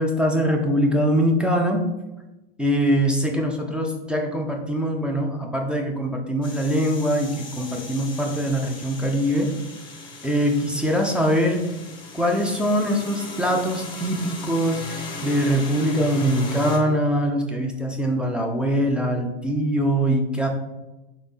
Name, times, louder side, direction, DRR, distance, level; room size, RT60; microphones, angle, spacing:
voice 1, 0.0-1.8 2.6-9.5 10.2-11.6 12.1-20.5, equal, 5° right, 1 dB, 0.4 m, -23 dB
sound 1, 6.4-16.8, left 2 dB, 15° left, 0.9 m, -37 dB
3.8 x 3.4 x 4.0 m, 1.0 s
figure-of-eight pair, 90°, 29 cm